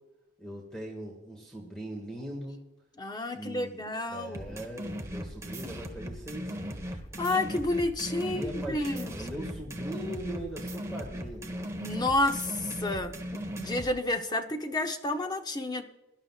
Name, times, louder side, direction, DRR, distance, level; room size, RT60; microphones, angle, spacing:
voice 1, 0.4-2.6 3.3-7.0 8.2-11.8, right 1 dB, 5° left, 0 dB, 1.8 m, -41 dB
voice 2, 3.0-4.6 7.2-9.5 11.8-15.8, left 2 dB, 20° left, 6 dB, 0.8 m, -30 dB
sound 1, 4.3-13.9, equal, 15° right, 1.2 m, -38 dB
22.5 x 11.5 x 2.4 m, 0.99 s
head